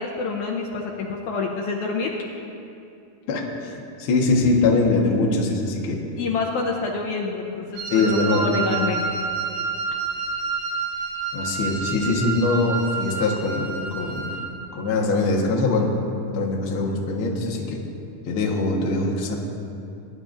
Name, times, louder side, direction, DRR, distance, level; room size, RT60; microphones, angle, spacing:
voice 1, 0.0-2.1 4.9-5.0 6.2-9.0, left 4 dB, 85° left, -1 dB, 1.6 m, -27 dB
voice 2, 3.3-6.0 7.9-8.5 11.3-14.3 14.7-15.9 16.3-17.8 18.2-19.4, left 3 dB, 65° left, -1 dB, 1.3 m, -22 dB
Wind instrument woodwind instrument, 7.8-14.5, right 5 dB, 75° right, 3.1 m, -29 dB
21.0 x 10.5 x 2.6 m, 2.6 s
omnidirectional pair, 4.4 m